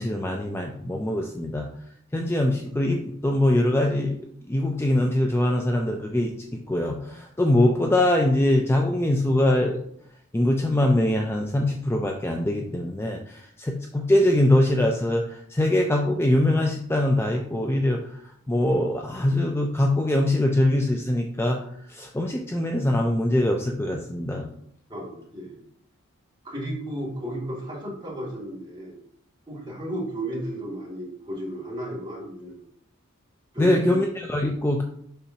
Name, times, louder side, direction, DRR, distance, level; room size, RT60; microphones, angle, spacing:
voice 1, 0.0-1.7 2.1-4.2 4.5-9.8 10.3-18.2 18.5-21.6 21.9-24.5 33.6-34.8, left 1 dB, 10° left, 2 dB, 0.4 m, -23 dB
voice 2, 24.9-25.6 26.4-28.9 29.5-32.6 33.5-34.0, equal, 20° right, -5 dB, 2.4 m, -33 dB
7.0 x 5.6 x 2.8 m, 0.69 s
head